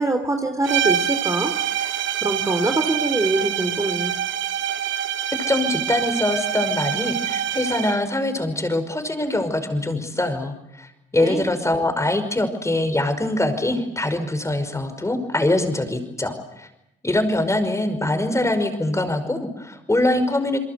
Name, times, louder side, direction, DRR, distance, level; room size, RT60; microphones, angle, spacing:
voice 1, 0.0-1.5 2.2-4.1 11.2-11.5, right 2 dB, 15° right, 6 dB, 3.2 m, -24 dB
sound 1, 0.6-8.1, right 10 dB, 70° right, 2.1 m, -25 dB
voice 2, 5.5-16.7 17.0-20.6, left 1 dB, 15° left, 9 dB, 5.4 m, -23 dB
29.5 x 22.5 x 8.2 m, 0.85 s
cardioid pair, 90°, 20 cm